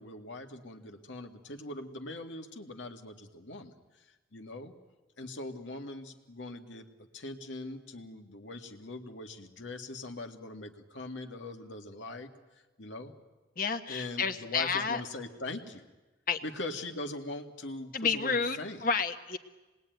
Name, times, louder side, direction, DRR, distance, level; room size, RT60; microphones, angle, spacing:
voice 1, 0.0-4.7 5.2-12.3 12.8-13.1 13.9-15.9 16.4-18.9, left 2 dB, 85° left, 4 dB, 2.0 m, -41 dB
voice 2, 13.6-15.0 16.3-16.4 17.9-19.4, left 5 dB, 50° left, 7 dB, 1.3 m, -30 dB
26.5 x 20.5 x 9.3 m, 1.2 s
head